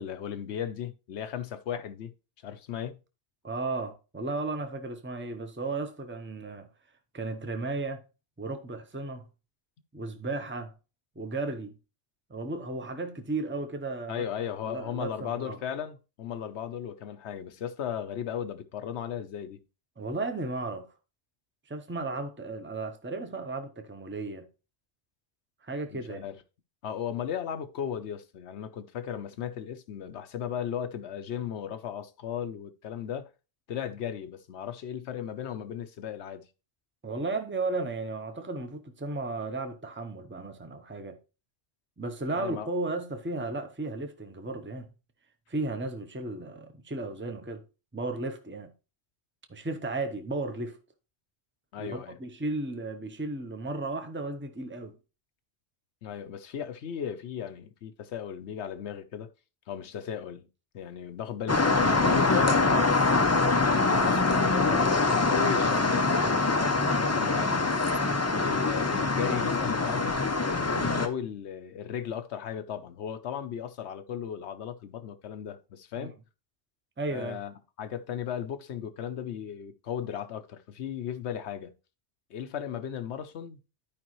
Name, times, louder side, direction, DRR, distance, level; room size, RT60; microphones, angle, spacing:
voice 1, 0.0-2.1 2.4-3.0 14.1-19.6 25.9-26.4 26.8-33.3 33.7-36.5 42.4-42.7 51.7-52.2 56.0-59.3 59.7-60.5 60.7-63.0 64.0-66.1 66.5-67.8 68.3-70.2 70.7-76.1 77.1-81.7 82.3-83.6, left 9 dB, 85° left, 1.0 m, -36 dB
voice 2, 3.4-6.7 7.1-8.0 8.4-9.2 9.9-10.7 11.2-11.8 12.3-14.2 14.6-15.6 20.0-20.9 21.7-24.5 25.6-26.2 37.0-41.2 42.0-44.9 45.5-47.6 47.9-48.7 49.5-50.8 51.8-55.0 76.0-76.1 77.0-77.4, right 3 dB, 10° right, 0.7 m, -34 dB
sound 1, 61.5-71.1, left 3 dB, 20° left, 0.5 m, -24 dB
12.0 x 5.0 x 3.1 m
omnidirectional pair, 1.1 m